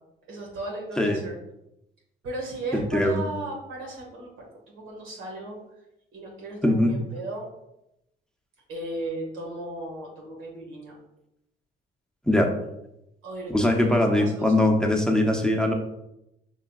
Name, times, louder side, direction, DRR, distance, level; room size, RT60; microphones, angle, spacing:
voice 1, 0.3-1.4 2.2-5.6 6.1-7.4 8.7-11.0 13.2-14.5, right 2 dB, 85° right, -2 dB, 1.7 m, -36 dB
voice 2, 2.7-3.2 6.6-7.0 12.3-12.5 13.5-15.7, left 1 dB, 5° left, 2 dB, 0.6 m, -21 dB
5.6 x 3.6 x 2.3 m, 0.85 s
cardioid pair, 90°, 20 cm